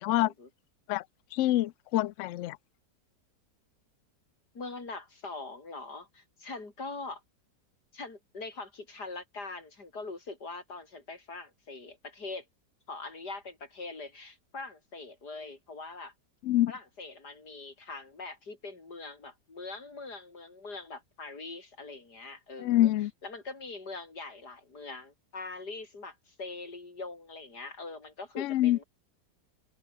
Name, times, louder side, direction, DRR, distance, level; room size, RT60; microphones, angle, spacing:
voice 1, 0.2-0.5 4.5-7.2 7.9-12.5 12.9-16.1 16.7-22.9 23.2-28.8, left 3 dB, 65° left, 4.9 m, -42 dB
voice 2, 1.3-2.6 16.4-16.7 22.6-23.1 28.4-28.8, left 15 dB, 90° left, 0.6 m, -26 dB
omnidirectional pair, 1.9 m